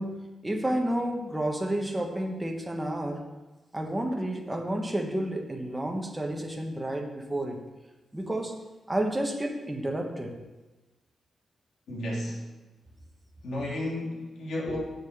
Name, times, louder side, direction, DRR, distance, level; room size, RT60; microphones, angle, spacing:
voice 1, 0.0-3.2 3.7-7.6 8.1-8.6 8.9-10.4 14.7-14.8, right 1 dB, 10° right, 1 dB, 1.3 m, -31 dB
voice 2, 11.9-12.4 13.4-14.8, left 1 dB, 70° left, -3 dB, 2.9 m, -33 dB
7.9 x 7.4 x 6.6 m, 1.1 s
wide cardioid pair, 155°, 0 cm